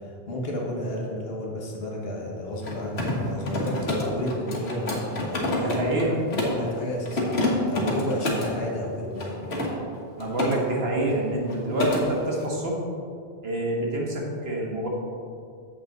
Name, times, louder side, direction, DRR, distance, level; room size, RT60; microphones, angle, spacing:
voice 1, 0.0-5.8 6.3-9.4, left 1 dB, 70° left, -2 dB, 1.7 m, -32 dB
Mechanisms, 2.5-6.6 7.1-8.5 9.2-10.5 10.8-11.2 11.5-12.0, left 1 dB, 85° left, 1.6 m, -28 dB
voice 2, 5.6-6.2 10.2-12.8 13.4-14.9, right 1 dB, 75° right, -2 dB, 1.6 m, -27 dB
8.4 x 7.2 x 3.9 m, 2.4 s
omnidirectional pair, 1.1 m